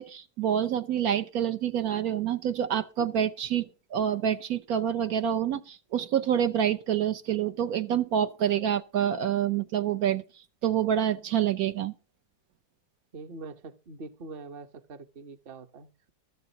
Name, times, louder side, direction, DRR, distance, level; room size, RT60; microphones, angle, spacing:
voice 1, 0.0-10.2 10.6-11.9, right 9 dB, 70° right, 1.3 m, -27 dB
voice 2, 13.1-16.1, right 3 dB, 40° right, 1.1 m, -44 dB
15.0 x 13.5 x 2.8 m
omnidirectional pair, 1.6 m